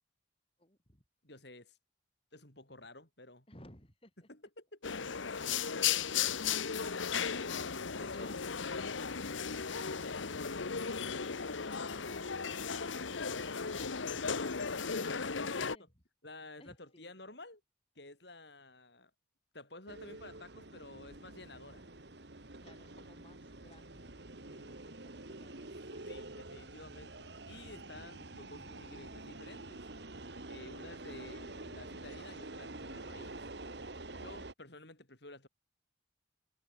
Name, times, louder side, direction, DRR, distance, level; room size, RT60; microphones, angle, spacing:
voice 1, 0.6-1.0 3.5-4.3 16.6-17.1 22.6-26.2, left 1 dB, 30° left, 6.6 m, -61 dB
voice 2, 1.2-1.8 2.3-3.5 4.3-4.8 7.9-8.5 15.0-15.7 16.2-17.6 18.0-19.1 19.5-21.8 26.1-29.9 30.5-33.4 34.2-35.5, left 2 dB, 60° left, 6.0 m, -52 dB
sound 1, 4.8-15.8, left 6 dB, 85° left, 1.1 m, -36 dB
sound 2, 19.9-34.5, right 2 dB, 65° right, 2.0 m, -47 dB
head